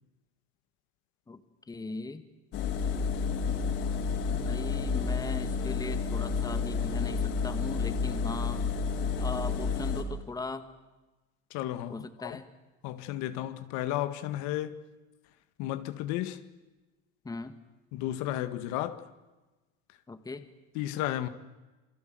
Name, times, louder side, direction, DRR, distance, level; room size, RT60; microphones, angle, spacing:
voice 1, 1.7-2.2 4.3-8.6 9.2-10.6 11.9-12.5 17.2-17.6 20.1-20.5, left 3 dB, 10° left, 1.8 m, -39 dB
Engine, 2.5-10.0, left 5 dB, 55° left, 5.1 m, -30 dB
voice 2, 11.5-12.4 12.8-14.8 15.6-16.4 17.9-19.1 20.7-21.3, left 13 dB, 70° left, 1.9 m, -33 dB
28.0 x 24.5 x 7.9 m
cardioid pair, 140°, 29 cm